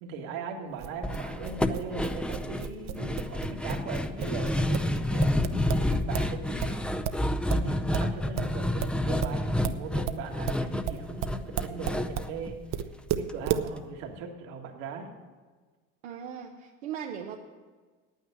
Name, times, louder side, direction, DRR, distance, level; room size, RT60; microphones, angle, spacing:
voice 1, 0.0-6.9 7.5-12.8 13.2-15.1, right 4 dB, 75° right, 2 dB, 1.9 m, -39 dB
sound 1, 0.8-6.3 6.6-12.3 12.7-13.7, right 10 dB, 55° right, 0.8 m, -33 dB
sound 2, 1.0-13.3 13.6-13.7 14.0-14.2, left 1 dB, 5° left, 0.5 m, -30 dB
voice 2, 16.0-17.4, right 8 dB, 90° right, 1 dB, 1.0 m, -39 dB
9.2 x 9.1 x 7.7 m, 1.4 s
supercardioid pair, 95°, 32 cm